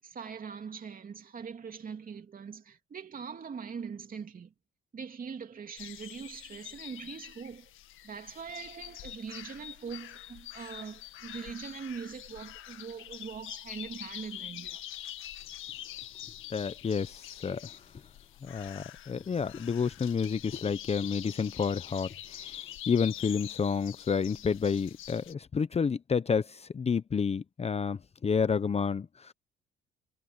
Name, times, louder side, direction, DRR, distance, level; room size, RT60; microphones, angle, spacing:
voice 1, 0.0-4.5 4.9-7.7 8.0-14.8, right 6 dB, 45° right, 3.0 m, -42 dB
sound 1, 5.8-25.3, left 13 dB, 85° left, 1.8 m, -45 dB
voice 2, 16.5-17.7 18.4-22.6 22.9-29.3, left 6 dB, 30° left, 0.8 m, -30 dB
cardioid pair, 90°, 20 cm